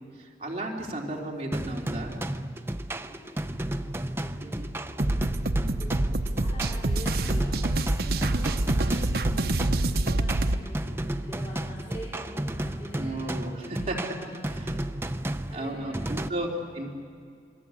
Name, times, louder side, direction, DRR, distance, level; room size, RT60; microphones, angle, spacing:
voice 1, 0.1-2.2 4.4-4.7 13.0-14.0 15.5-16.5 16.7-16.9, right 1 dB, 35° right, -2 dB, 3.3 m, -34 dB
sound 1, 1.5-16.3, right 1 dB, 15° right, 0.6 m, -33 dB
voice 2, 2.9-5.0 5.4-15.1 15.5-16.3 16.6-16.9, right 1 dB, 35° left, -7 dB, 4.4 m, -46 dB
sound 2, 5.0-10.6, right 2 dB, 60° right, 0.8 m, -26 dB
27.0 x 22.5 x 8.4 m, 2.1 s
head